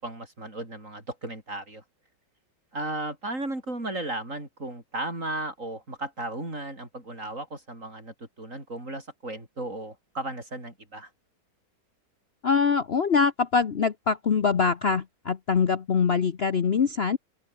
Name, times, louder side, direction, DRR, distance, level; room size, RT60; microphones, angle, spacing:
voice 1, 0.0-1.8 2.7-11.1, right 2 dB, 45° right, 6.9 m, -35 dB
voice 2, 12.4-17.2, left 5 dB, 45° left, 1.0 m, -23 dB
open air
omnidirectional pair, 1.9 m